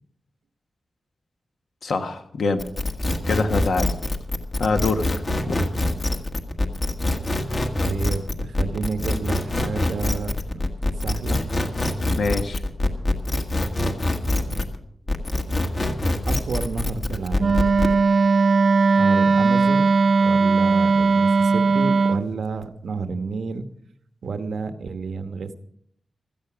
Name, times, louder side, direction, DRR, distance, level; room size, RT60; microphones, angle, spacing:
voice 1, 1.8-2.6 3.3-3.9 4.6-5.1 5.5-5.6 12.2-12.6, left 3 dB, 75° left, 6 dB, 1.4 m, -24 dB
sound 1, 2.6-14.8 15.1-17.9, left 1 dB, 35° left, 1.4 m, -24 dB
voice 2, 7.8-10.7 10.9-11.5 14.4-14.7 16.3-17.7 18.9-19.9 20.2-23.6 24.2-25.5, right 4 dB, 85° right, 9 dB, 1.1 m, -30 dB
Wind instrument woodwind instrument, 17.4-22.3, right 4 dB, 55° right, 0.6 m, -18 dB
16.0 x 13.5 x 5.0 m, 0.67 s
wide cardioid pair, 160°, 0 cm